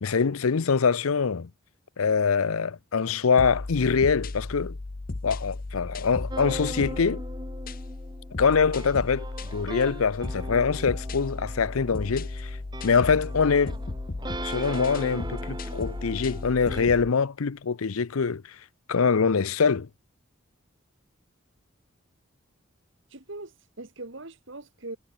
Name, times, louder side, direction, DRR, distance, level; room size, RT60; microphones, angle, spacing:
voice 1, 0.0-1.5 2.0-4.8 5.2-7.2 8.4-9.2 9.5-12.5 12.8-13.8 14.4-18.4 18.9-19.9, left 5 dB, 85° left, 0.6 m, -24 dB
sound 1, 3.4-17.1, left 2 dB, 40° left, 0.7 m, -35 dB
sound 2, 6.3-16.9, right 1 dB, 20° right, 1.9 m, -40 dB
voice 2, 23.1-25.0, right 2 dB, 65° right, 2.0 m, -41 dB
head